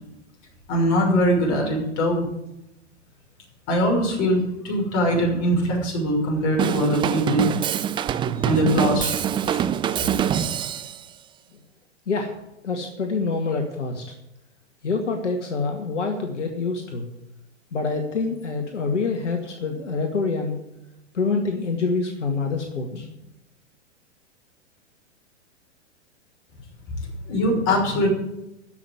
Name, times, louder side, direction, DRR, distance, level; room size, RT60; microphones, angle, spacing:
voice 1, 0.7-2.3 3.7-7.5 8.4-10.0 27.3-28.1, equal, 40° left, -1 dB, 6.1 m, -22 dB
Drum kit / Drum, 6.6-11.0, right 9 dB, 15° right, 0.5 m, -24 dB
voice 2, 12.1-12.4 12.6-14.0 14.8-17.1 17.7-20.6 21.1-23.1, left 4 dB, 80° left, 3 dB, 2.1 m, -26 dB
14.0 x 6.2 x 9.7 m, 0.90 s
hypercardioid pair, 110°, 36 cm